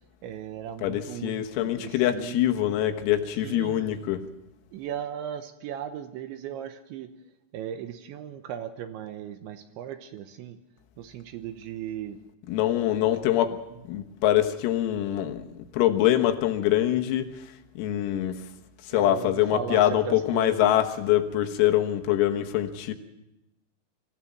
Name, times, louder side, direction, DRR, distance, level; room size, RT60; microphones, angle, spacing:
voice 1, 0.2-2.4 3.4-4.0 4.7-7.1 7.5-10.6 11.0-12.2 18.9-20.8, right 10 dB, 75° right, 3.0 m, -37 dB
voice 2, 0.8-4.3 12.5-13.6 13.9-18.5 18.8-22.9, left 12 dB, 85° left, 4.1 m, -24 dB
24.5 x 16.0 x 7.4 m
omnidirectional pair, 6.0 m